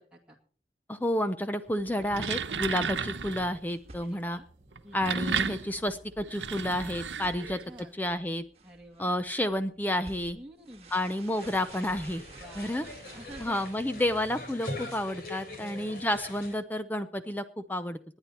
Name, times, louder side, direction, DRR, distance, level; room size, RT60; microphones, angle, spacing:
voice 1, 0.9-4.4 4.9-7.6 7.9-8.4 9.0-10.4 10.9-12.2 12.6-12.8 13.4-18.2, left 1 dB, 10° left, 10 dB, 0.6 m, -30 dB
sound 1, 1.9-3.6 4.7-7.8, right 6 dB, 85° right, 1.0 m, -33 dB
sound 2, 3.4-14.1, right 3 dB, 35° right, 1.7 m, -53 dB
voice 2, 4.0-4.5 4.8-5.2 7.4-7.9 8.6-9.2 10.3-10.9 12.4-13.6 15.4-16.0, right 1 dB, 5° right, -1 dB, 2.1 m, -49 dB
sound 3, 11.4-16.5, left 1 dB, 55° left, 3.6 m, -43 dB
19.5 x 9.8 x 4.4 m, 0.41 s
head